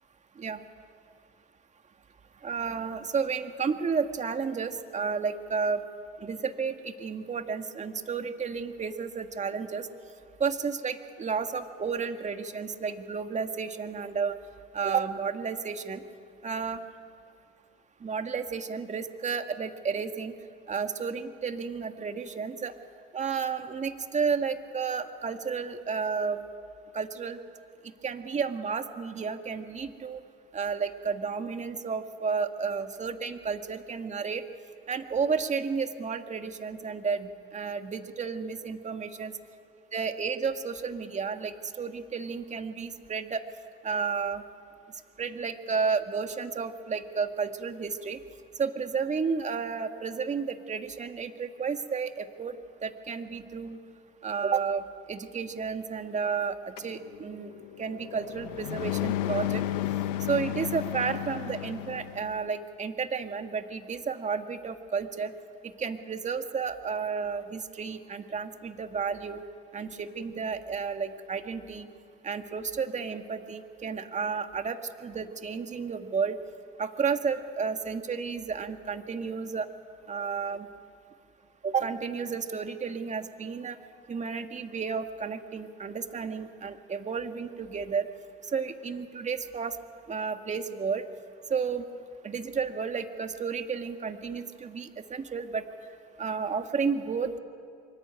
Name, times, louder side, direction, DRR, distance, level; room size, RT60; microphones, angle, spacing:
voice 1, 2.4-5.8 6.2-9.9 10.4-14.4 14.7-16.0 16.4-16.8 18.0-20.3 20.7-22.7 23.1-26.5 26.9-27.4 27.8-30.2 30.5-34.4 34.9-39.3 39.9-43.4 43.8-44.4 45.2-48.2 48.6-52.6 52.8-53.8 54.2-57.5 57.8-59.6 60.3-65.3 65.6-69.4 69.7-71.9 72.2-76.4 76.8-79.7 80.1-80.7 81.6-83.8 84.1-88.1 88.5-89.8 90.1-91.0 91.5-91.8 92.2-95.6 96.2-97.4, right 5 dB, 35° right, 7 dB, 2.1 m, -32 dB
sound 1, 56.8-62.3, left 13 dB, 85° left, 1.3 m, -33 dB
25.0 x 23.0 x 9.1 m, 2.2 s
supercardioid pair, 75°, 21 cm